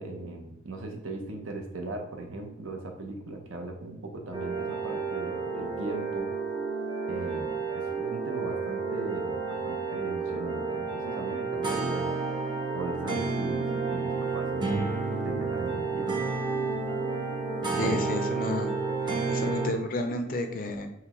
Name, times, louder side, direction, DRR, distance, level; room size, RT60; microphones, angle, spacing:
voice 1, 0.0-6.3 7.1-12.1 12.7-14.9 15.2-16.2 17.7-18.0, right 2 dB, 80° right, 3 dB, 0.7 m, -38 dB
sound 1, 4.3-19.7, right 4 dB, 20° right, 0.6 m, -31 dB
voice 2, 17.8-18.7 19.3-20.9, left 2 dB, 45° left, 6 dB, 0.5 m, -31 dB
5.7 x 2.2 x 3.0 m, 0.85 s
head